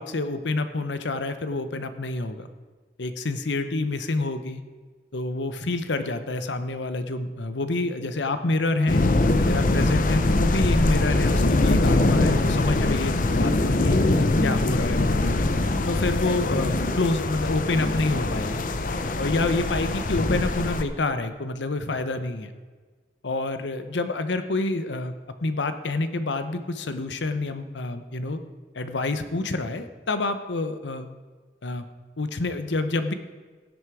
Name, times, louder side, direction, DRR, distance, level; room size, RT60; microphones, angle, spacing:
voice 1, 0.0-2.5 3.0-4.6 5.1-9.0 9.4-14.0 14.4-15.4 15.9-18.7 19.2-22.5 23.2-25.1 25.4-28.4 28.7-31.1 31.6-31.8 32.2-33.1, left 2 dB, 85° left, 10 dB, 0.9 m, -28 dB
sound 1, 8.9-20.8, left 2 dB, 50° left, 0.7 m, -22 dB
16.0 x 8.1 x 4.9 m, 1.4 s
head